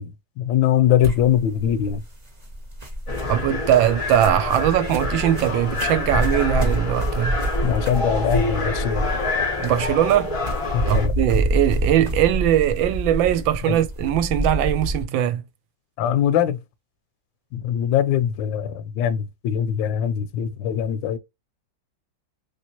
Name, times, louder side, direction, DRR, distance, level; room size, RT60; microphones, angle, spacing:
voice 1, 0.0-2.0 7.6-9.1 10.7-11.1 13.7-13.8 16.0-16.6 17.5-21.2, left 10 dB, 75° left, 1.2 m, -22 dB
sound 1, 1.0-15.0, equal, 30° right, 0.8 m, -27 dB
sound 2, 3.1-11.1, left 3 dB, 30° left, 0.5 m, -27 dB
voice 2, 3.3-7.4 9.6-10.3 10.9-15.4, right 11 dB, 75° right, 1.2 m, -20 dB
3.3 x 3.0 x 2.9 m
omnidirectional pair, 2.2 m